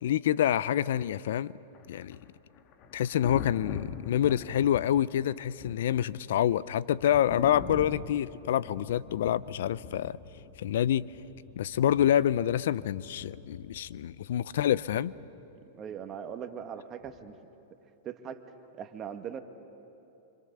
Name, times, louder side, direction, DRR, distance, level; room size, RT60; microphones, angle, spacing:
voice 1, 0.0-1.5 1.9-2.2 2.9-10.2 10.6-11.1 11.6-15.1, left 11 dB, 70° left, 20 dB, 0.5 m, -27 dB
Thunder, 1.7-15.4 17.0-17.3, left 5 dB, 45° left, 1.9 m, -44 dB
voice 2, 15.7-17.4 18.0-18.4 18.8-19.4, right 8 dB, 30° right, 8 dB, 1.7 m, -40 dB
26.5 x 26.0 x 6.8 m, 2.8 s
hypercardioid pair, 110°, 0 cm